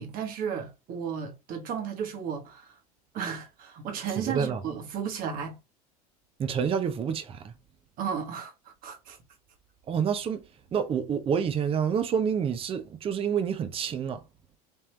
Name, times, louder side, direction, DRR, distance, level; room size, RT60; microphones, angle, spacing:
voice 1, 0.0-2.7 3.1-5.6 8.0-9.2, right 7 dB, 50° right, 1.3 m, -34 dB
voice 2, 4.2-4.6 6.4-7.5 9.9-10.4 10.7-14.2, right 7 dB, 30° right, 0.6 m, -28 dB
3.5 x 2.8 x 3.2 m
hypercardioid pair, 90°, 19 cm